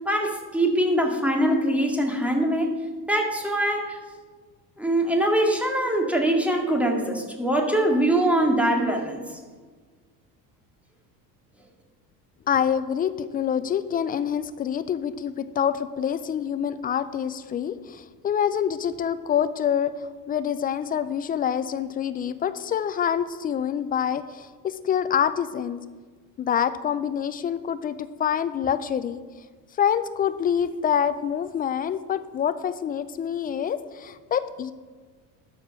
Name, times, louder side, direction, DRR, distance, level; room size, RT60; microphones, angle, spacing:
voice 1, 0.1-2.7 3.1-4.0 4.8-9.2, right 1 dB, 5° right, 1 dB, 2.2 m, -23 dB
voice 2, 12.5-25.8 26.4-29.2 29.8-34.7, left 8 dB, 20° left, 12 dB, 0.3 m, -26 dB
12.5 x 4.6 x 6.1 m, 1.4 s
hypercardioid pair, 65°, 49 cm